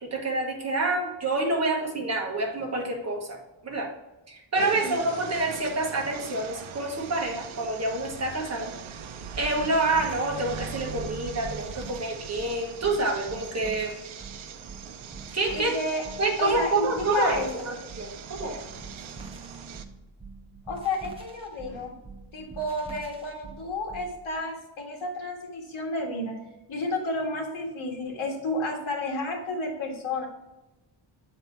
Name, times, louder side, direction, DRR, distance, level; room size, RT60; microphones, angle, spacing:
voice 1, 0.0-3.9 4.3-8.7 9.4-13.9 15.3-15.8 16.2-18.6, right 2 dB, 30° right, 0 dB, 1.3 m, -28 dB
sound 1, 4.5-19.9, right 7 dB, 80° right, 0.7 m, -41 dB
sound 2, 9.4-24.1, right 3 dB, 10° right, 0.8 m, -45 dB
voice 2, 15.5-16.0 16.4-17.5 20.7-21.9 22.3-26.4 26.7-30.3, left 2 dB, 80° left, 0 dB, 1.8 m, -31 dB
7.8 x 4.1 x 4.6 m, 0.99 s
wide cardioid pair, 180°, 48 cm